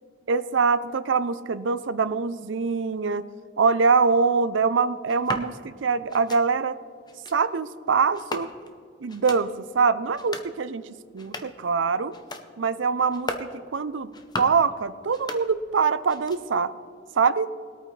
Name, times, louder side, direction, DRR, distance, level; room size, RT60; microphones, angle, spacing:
voice 1, 0.3-3.3 3.6-6.8 7.3-8.5 9.0-10.9 11.1-12.1 12.6-14.1 14.4-16.7 17.1-17.5, right 5 dB, 75° right, 14 dB, 0.5 m, -24 dB
sound 1, 5.1-5.5 6.1-6.4 7.1-7.4 8.1-8.8 9.1-9.4 10.1-10.5 11.1-11.6 12.1-12.5 13.1-13.5 14.1-14.6 15.1-15.8 16.1-16.6, left 2 dB, 20° left, 0.8 m, -37 dB
20.5 x 8.7 x 3.3 m, 2.1 s
head